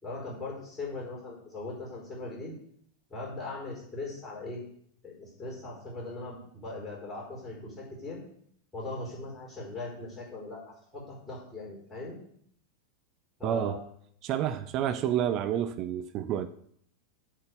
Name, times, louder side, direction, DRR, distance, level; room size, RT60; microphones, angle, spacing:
voice 1, 0.0-2.5 3.1-4.6 5.0-8.2 8.7-10.6 10.9-12.2 13.4-13.8, left 2 dB, 10° left, -7 dB, 4.3 m, -39 dB
voice 2, 13.4-13.8 14.2-16.5, right 10 dB, 35° right, 12 dB, 0.5 m, -29 dB
7.8 x 5.6 x 7.1 m, 0.67 s
figure-of-eight pair, 90°, 0 cm